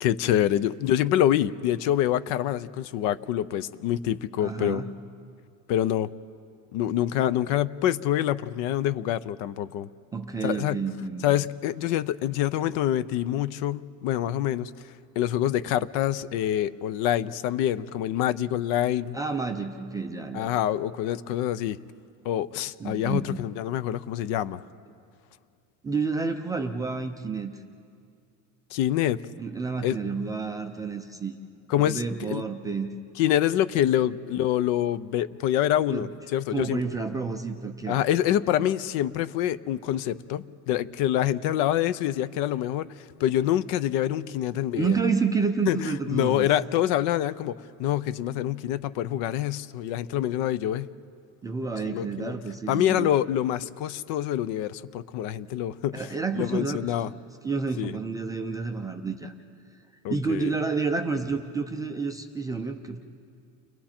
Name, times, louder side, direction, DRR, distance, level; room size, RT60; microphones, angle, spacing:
voice 1, 0.0-4.8 5.7-6.1 6.7-9.9 10.4-10.8 11.2-14.7 15.2-19.2 20.3-21.8 22.2-24.6 28.7-29.2 29.8-30.0 31.7-32.4 33.2-36.8 37.9-45.0 45.7-50.9 51.9-52.3 52.7-56.1 56.3-57.1 57.8-58.0 60.0-60.5, left 11 dB, 50° left, 16 dB, 0.6 m, -26 dB
voice 2, 4.4-4.9 10.1-11.3 19.1-20.5 22.8-23.4 25.8-27.5 29.4-31.4 31.8-32.9 35.9-36.1 36.5-38.0 38.6-38.7 44.7-46.5 51.4-53.1 55.9-59.3 60.1-63.0, right 4 dB, 10° right, 3 dB, 0.4 m, -30 dB
30.0 x 21.5 x 4.4 m, 2.3 s
supercardioid pair, 155°, 42 cm